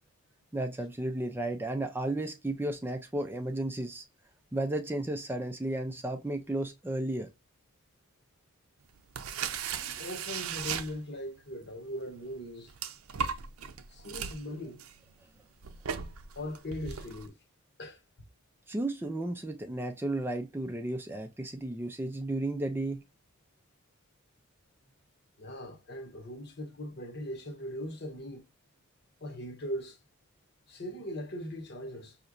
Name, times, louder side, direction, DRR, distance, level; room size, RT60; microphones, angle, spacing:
voice 1, 0.5-4.0 4.5-7.3 18.7-23.0, right 1 dB, 10° right, 0.3 m, -33 dB
sound 1, 9.0-11.4 12.0-17.3, right 7 dB, 80° right, 0.6 m, -37 dB
voice 2, 9.8-12.7 13.9-14.8 16.4-17.4 17.8-18.0 25.4-28.4 29.2-30.0 30.7-32.2, equal, 50° left, 0.9 m, -40 dB
5.4 x 2.9 x 2.5 m
head